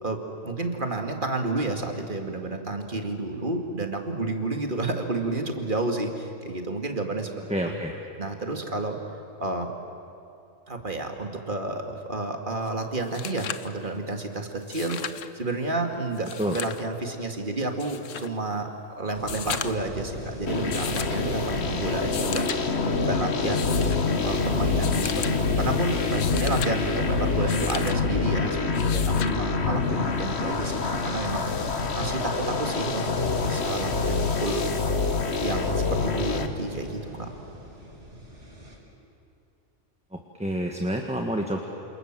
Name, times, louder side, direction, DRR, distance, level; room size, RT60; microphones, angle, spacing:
voice 1, 0.0-7.3 7.6-7.7 8.2-9.0 9.4-9.7 10.7-15.0 15.3-18.7 19.0-23.9 24.2-31.4 32.0-33.1 33.4-34.6 35.4-37.4, right 2 dB, 40° right, 4 dB, 2.4 m, -30 dB
voice 2, 7.5-7.9 16.4-16.6 40.1-41.6, equal, 5° right, 2 dB, 1.5 m, -28 dB
sound 1, 12.7-12.8 13.0-13.7 14.6-15.3 16.1-16.8 17.8-18.3 19.2-19.9 20.7-21.2 22.0-22.6 23.4-24.0 24.8-25.3 26.0-26.7 27.5-28.0 28.7-29.4 30.8-30.9, left 8 dB, 70° left, 1.2 m, -35 dB
sound 2, 19.1-38.8, equal, 60° right, 5.4 m, -43 dB
sound 3, 20.5-36.5, left 4 dB, 55° left, 1.7 m, -26 dB
28.0 x 28.0 x 7.6 m, 2.6 s
omnidirectional pair, 1.4 m